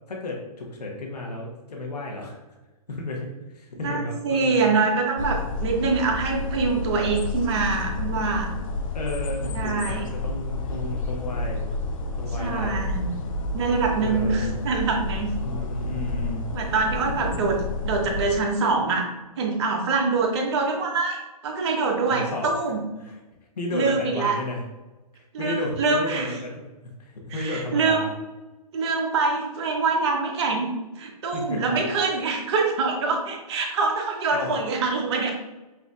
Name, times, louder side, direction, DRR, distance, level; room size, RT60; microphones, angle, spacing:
voice 1, 0.1-2.4 2.9-4.7 8.9-11.7 12.2-12.9 14.0-14.6 15.4-16.5 17.1-17.5 22.1-22.5 23.0-23.1 23.6-24.6 25.2-26.6 27.0-28.1 31.3-31.8 34.3-34.5, left 1 dB, 85° left, -1 dB, 1.0 m, -33 dB
voice 2, 3.8-8.5 9.5-10.0 12.4-13.1 13.5-15.3 16.5-17.6 17.8-19.1 19.4-22.8 23.7-24.4 25.3-26.3 27.3-28.1 28.7-30.7 31.0-35.3, right 4 dB, 45° right, 1 dB, 0.9 m, -24 dB
sound 1, 5.2-18.4, left 2 dB, 55° left, 0.5 m, -30 dB
5.8 x 2.6 x 2.4 m, 1.1 s
hypercardioid pair, 140°, 20 cm